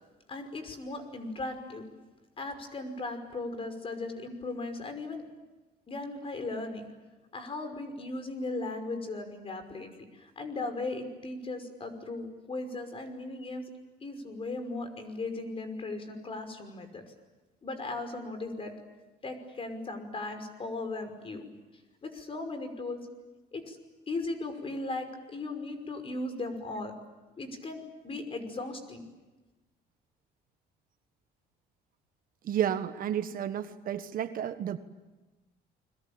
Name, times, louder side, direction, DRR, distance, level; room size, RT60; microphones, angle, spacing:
voice 1, 0.3-1.9 2.4-5.2 5.9-6.9 7.3-13.7 14.0-17.0 17.6-18.7 19.2-21.4 22.0-23.0 23.5-23.8 24.1-26.9 27.4-29.0, left 2 dB, 35° left, 8 dB, 5.6 m, -37 dB
voice 2, 32.4-34.8, right 10 dB, 55° right, 10 dB, 1.5 m, -31 dB
30.0 x 22.0 x 8.9 m, 1.2 s
cardioid pair, 110°, 17 cm